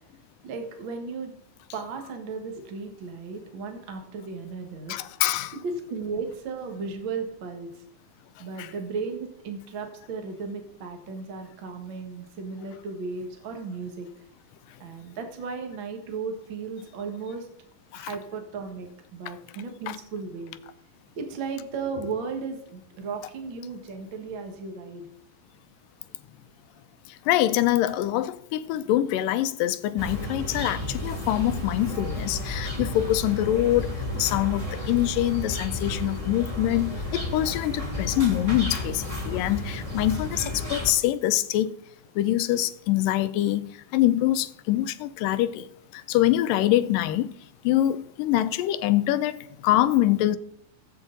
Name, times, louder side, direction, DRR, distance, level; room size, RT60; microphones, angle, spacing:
voice 1, 0.4-1.3 1.7-5.0 5.5-7.8 8.4-14.1 14.8-17.5 17.9-20.6 21.2-25.1, right 4 dB, 45° right, 1.8 m, -35 dB
voice 2, 4.9-5.5 8.6-8.7 17.9-18.1 19.3-19.4 19.9-20.0 27.1-41.7 42.2-47.3 47.6-50.4, left 14 dB, 85° left, 2.3 m, -25 dB
sound 1, 30.0-40.9, left 1 dB, 15° right, 1.5 m, -32 dB
17.0 x 8.1 x 4.0 m
omnidirectional pair, 3.9 m